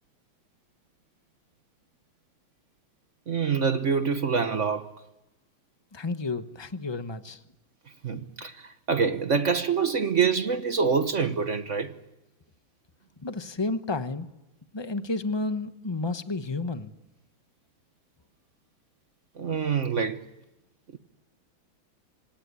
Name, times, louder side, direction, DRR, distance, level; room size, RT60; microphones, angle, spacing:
voice 1, 3.3-4.9 8.0-11.9 19.3-20.2 20.9-21.0, right 6 dB, 45° right, 1.1 m, -26 dB
voice 2, 5.9-7.4 13.2-14.3 14.7-16.9, left 3 dB, 20° left, 0.7 m, -31 dB
26.5 x 17.5 x 9.7 m
omnidirectional pair, 2.2 m